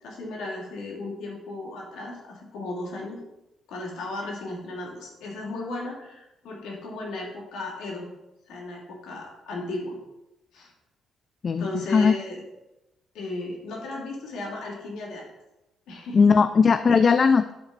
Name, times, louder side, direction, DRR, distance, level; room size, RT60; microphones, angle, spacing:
voice 1, 0.0-3.2 3.7-8.1 8.5-10.0 10.5-10.7 11.6-12.4 13.1-15.2 15.9-16.2, left 2 dB, 85° left, -2 dB, 2.9 m, -35 dB
voice 2, 11.4-12.1 16.1-17.5, left 5 dB, 45° left, 11 dB, 0.4 m, -19 dB
9.5 x 4.3 x 6.6 m, 0.96 s
cardioid pair, 90°, 0 cm